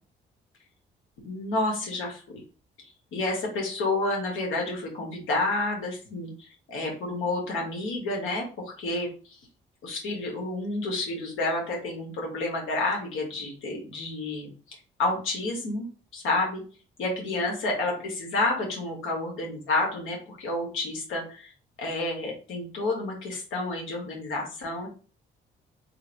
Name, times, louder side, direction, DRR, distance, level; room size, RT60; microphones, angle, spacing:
voice 1, 1.2-2.4 2.8-9.4 9.8-15.9 16.1-16.6 17.0-21.5 21.8-24.9, left 2 dB, 85° left, -1 dB, 1.6 m, -30 dB
3.7 x 2.6 x 4.6 m, 0.38 s
cardioid pair, 90°, 20 cm